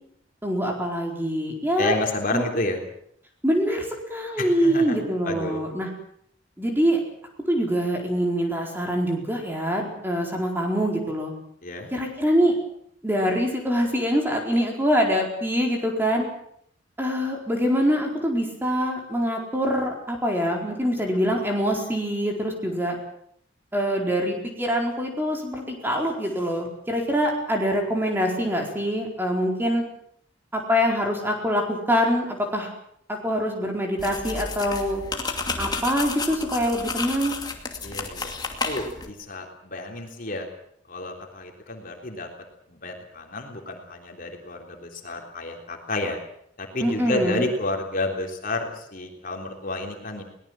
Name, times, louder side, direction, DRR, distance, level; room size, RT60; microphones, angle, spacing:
voice 1, 0.4-2.0 2.3-2.4 3.4-5.9 6.6-7.0 7.5-11.3 11.9-12.5 13.0-16.2 17.0-23.0 23.7-29.8 30.5-32.7 33.1-35.0 35.6-37.4 46.8-47.4, equal, 10° right, 1 dB, 4.5 m, -24 dB
voice 2, 1.8-2.8 4.4-5.0 5.2-5.6 11.6-11.9 37.8-38.4 38.6-40.5 40.9-42.3 42.7-46.2 46.6-50.2, left 2 dB, 45° left, 2 dB, 3.5 m, -30 dB
sound 1, 34.0-39.1, left 4 dB, 20° left, 2.6 m, -31 dB
22.5 x 19.0 x 7.6 m, 0.69 s
head